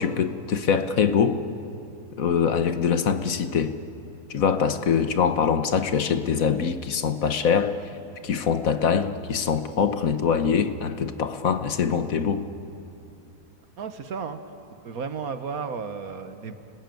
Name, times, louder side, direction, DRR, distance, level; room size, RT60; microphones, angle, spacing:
voice 1, 0.0-1.4 2.2-3.8 4.3-7.8 8.2-12.5, left 6 dB, 65° left, 10 dB, 1.4 m, -23 dB
voice 2, 13.8-14.5 14.8-16.6, right 5 dB, 70° right, 9 dB, 1.7 m, -33 dB
29.0 x 19.5 x 9.3 m, 2.6 s
omnidirectional pair, 1.6 m